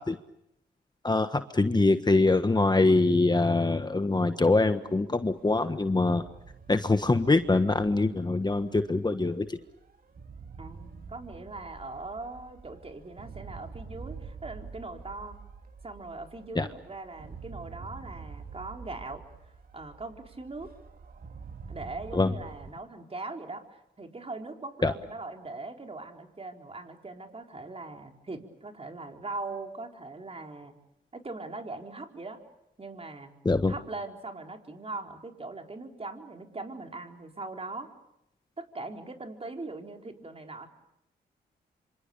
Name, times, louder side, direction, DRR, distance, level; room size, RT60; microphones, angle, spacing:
voice 1, 1.0-6.2 6.7-9.6 16.5-16.7 22.1-22.3 24.8-24.9 33.4-33.7, left 3 dB, 25° left, 9 dB, 1.4 m, -24 dB
sound 1, 4.8-22.7, right 5 dB, 55° right, 2.2 m, -47 dB
voice 2, 10.6-15.4 15.8-19.2 19.7-20.7 21.7-30.7 31.1-32.4 32.8-33.3 33.6-37.9 38.6-40.7, right 3 dB, 30° right, 3 dB, 4.3 m, -40 dB
26.5 x 26.0 x 7.0 m, 0.80 s
cardioid pair, 60°, 18 cm